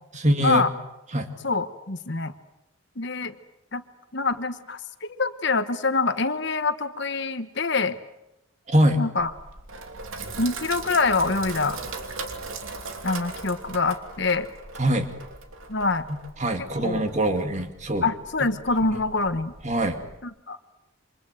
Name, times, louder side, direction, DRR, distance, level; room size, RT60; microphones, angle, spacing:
voice 1, 0.1-0.7 1.1-1.3 8.7-9.0 14.8-15.1 16.1-18.1 18.9-19.0 19.6-20.0, right 1 dB, 35° right, 6 dB, 2.3 m, -23 dB
voice 2, 1.4-2.3 3.0-3.3 3.7-3.8 4.1-8.0 9.0-9.3 10.4-11.8 13.0-14.5 15.7-16.1 16.8-17.0 18.0-19.5 20.2-20.6, left 3 dB, 55° left, 10 dB, 1.3 m, -25 dB
Sink (filling or washing), 9.2-20.2, right 3 dB, 75° right, 2.9 m, -39 dB
28.0 x 25.5 x 7.9 m, 0.90 s
head